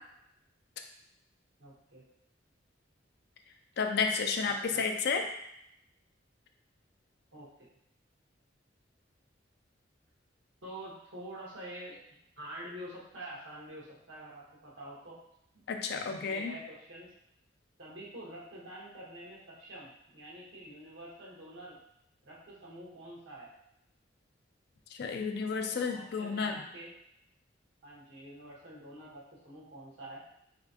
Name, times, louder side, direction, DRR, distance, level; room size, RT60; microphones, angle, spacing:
voice 1, 1.6-2.0 4.5-4.9 7.3-7.7 10.6-12.0 12.4-15.2 15.5-15.6 16.2-17.1 17.8-21.8 22.2-23.5 25.7-26.9 27.8-30.2, right 1 dB, 90° right, -5 dB, 1.3 m, -47 dB
voice 2, 3.8-5.2 15.7-16.5 25.0-26.6, left 5 dB, 60° left, 4 dB, 0.4 m, -31 dB
4.1 x 3.3 x 2.9 m, 0.78 s
head